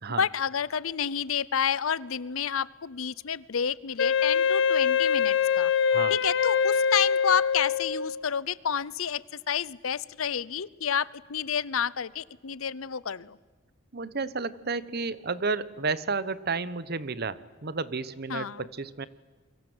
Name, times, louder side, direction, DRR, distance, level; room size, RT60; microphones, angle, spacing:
voice 1, 0.2-5.7 6.1-13.4 18.3-18.6, left 7 dB, 85° left, 21 dB, 0.7 m, -30 dB
Wind instrument woodwind instrument, 4.0-8.2, left 7 dB, 60° left, 1.1 m, -24 dB
voice 2, 13.9-19.1, right 4 dB, 50° right, 16 dB, 1.1 m, -32 dB
28.0 x 23.5 x 8.0 m, 1.3 s
head